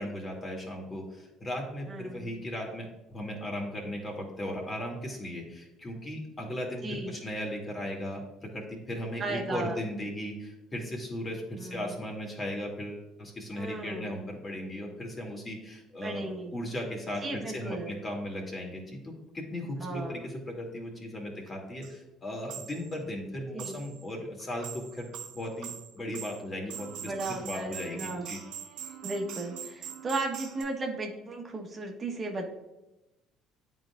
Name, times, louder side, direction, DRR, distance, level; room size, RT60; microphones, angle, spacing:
voice 1, 0.0-16.2 16.5-25.7 26.0-27.1 27.4-28.4, left 1 dB, 30° left, 0 dB, 2.3 m, -37 dB
voice 2, 1.9-2.4 6.8-7.2 9.2-9.8 11.6-12.0 13.5-14.1 16.0-16.5 17.2-18.0 19.8-20.3 23.5-23.8 27.0-28.3 29.0-32.5, right 2 dB, 35° right, 1 dB, 1.1 m, -35 dB
sound 1, 21.5-21.6 21.8-21.9 22.5-23.0 23.6-24.0 24.4-30.6, right 8 dB, 65° right, 0.9 m, -43 dB
11.0 x 4.0 x 2.4 m, 0.99 s
hypercardioid pair, 60°, 0 cm